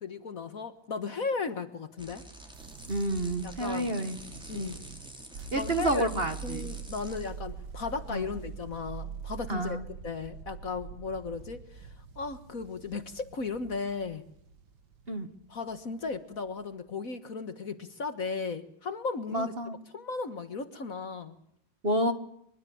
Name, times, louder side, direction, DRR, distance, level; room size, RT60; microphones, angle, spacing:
voice 1, 0.0-2.2 3.4-3.9 4.5-4.9 5.4-9.8 10.0-14.3 15.5-19.5 19.9-21.4, left 4 dB, 45° left, 11 dB, 1.7 m, -36 dB
sound 1, 2.0-7.3, equal, ahead, 5.7 m, -47 dB
sound 2, 2.5-16.7, right 5 dB, 65° right, 2.0 m, -44 dB
voice 2, 2.9-4.2 4.5-4.7 5.5-6.7 8.1-8.2 9.5-9.8 15.1-15.3 19.3-19.8 21.8-22.1, right 1 dB, 30° right, 9 dB, 1.8 m, -29 dB
24.0 x 23.5 x 8.7 m, 0.69 s
omnidirectional pair, 2.1 m